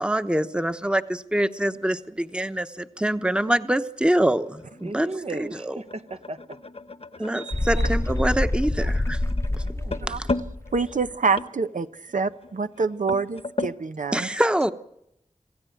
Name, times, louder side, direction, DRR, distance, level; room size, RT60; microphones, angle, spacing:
voice 1, 0.0-5.1 5.7-5.8 7.2-9.2 10.1-10.3 14.1-14.7, right 1 dB, 5° right, 1.0 m, -25 dB
sound 1, 4.0-13.8, left 3 dB, 50° left, 1.1 m, -36 dB
voice 2, 4.8-6.6 7.2-8.3 9.5-10.2, right 3 dB, 55° right, 1.0 m, -38 dB
sound 2, 7.5-11.1, left 1 dB, 20° left, 0.8 m, -26 dB
voice 3, 10.7-14.3, right 4 dB, 90° right, 0.8 m, -26 dB
27.0 x 16.0 x 9.1 m
wide cardioid pair, 75°, 13 cm